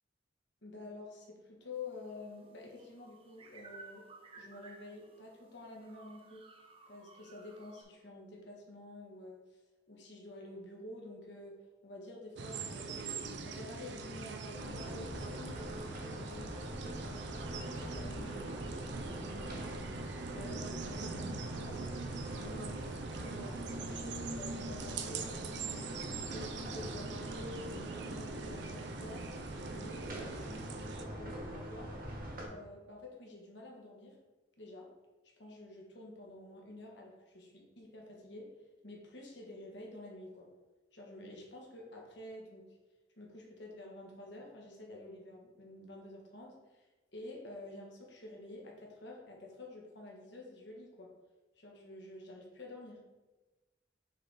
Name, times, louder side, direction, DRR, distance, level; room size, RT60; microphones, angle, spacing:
voice 1, 0.6-4.0 4.3-6.5 6.9-9.6 9.9-13.2 13.4-18.4 18.8-22.0 22.3-25.9 26.3-32.0 32.4-34.2 34.6-34.9 35.4-38.5 38.8-40.5 40.9-42.8 43.2-46.8 47.1-51.1 51.5-53.0, left 2 dB, 65° left, -1 dB, 1.4 m, -49 dB
sound 1, 1.7-7.8, right 3 dB, 30° right, 0.7 m, -57 dB
sound 2, 12.4-31.1, right 4 dB, 65° right, 0.5 m, -43 dB
sound 3, 14.5-32.5, right 1 dB, 50° right, 1.1 m, -43 dB
6.4 x 3.7 x 4.0 m, 1.2 s
head